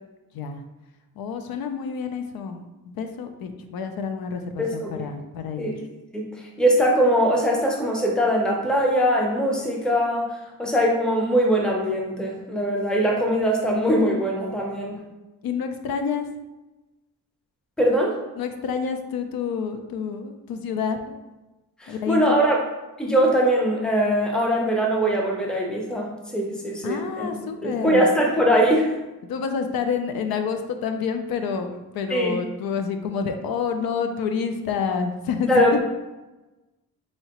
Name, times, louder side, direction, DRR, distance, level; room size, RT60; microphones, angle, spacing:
voice 1, 1.2-5.8 15.4-16.2 18.4-21.1 21.9-22.4 26.8-28.1 29.3-35.6, left 6 dB, 80° left, 6 dB, 0.5 m, -28 dB
voice 2, 4.6-5.0 5.6-5.8 6.1-10.3 10.6-15.0 17.8-18.2 21.8-22.6 23.0-27.3 27.6-28.9 32.1-32.4 35.5-35.7, equal, ahead, -1 dB, 0.5 m, -21 dB
4.3 x 2.8 x 2.9 m, 1.1 s
wide cardioid pair, 170°, 35 cm